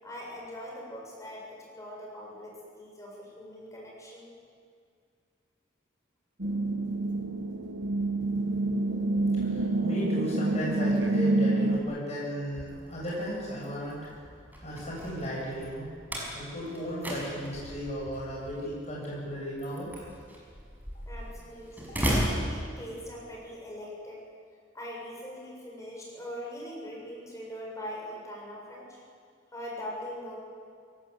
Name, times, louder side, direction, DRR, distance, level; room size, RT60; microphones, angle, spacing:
voice 1, 0.0-4.3 21.1-24.2 24.7-29.0 29.5-30.3, equal, 15° left, -3 dB, 7.0 m, -41 dB
sound 1, 6.4-11.8, right 2 dB, 75° right, 1.5 m, -27 dB
voice 2, 9.4-14.0 14.3-15.9 16.3-19.9, equal, 35° left, -5 dB, 7.4 m, -35 dB
Slam, 12.4-23.3, equal, 10° right, 5.7 m, -36 dB
22.5 x 18.0 x 8.5 m, 2.1 s
head